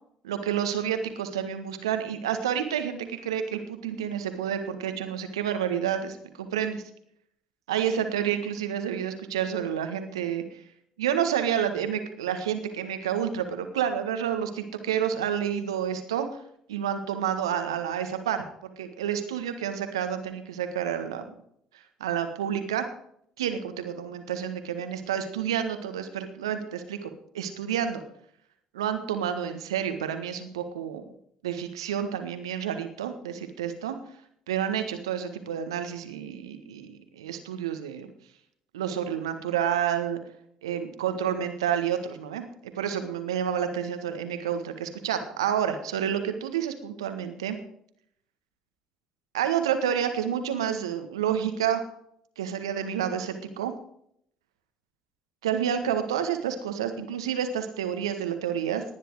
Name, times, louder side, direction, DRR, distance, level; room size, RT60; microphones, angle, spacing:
voice 1, 0.2-6.8 7.7-10.6 11.0-16.3 16.7-18.4 18.8-21.2 22.0-22.9 23.4-28.0 28.7-31.0 31.4-34.0 34.5-38.1 38.7-40.2 40.6-47.6 49.3-51.8 52.4-53.7 55.4-58.8, right 9 dB, 80° right, 8 dB, 1.6 m, -29 dB
18.5 x 10.0 x 4.8 m, 0.69 s
figure-of-eight pair, 50°, 3 cm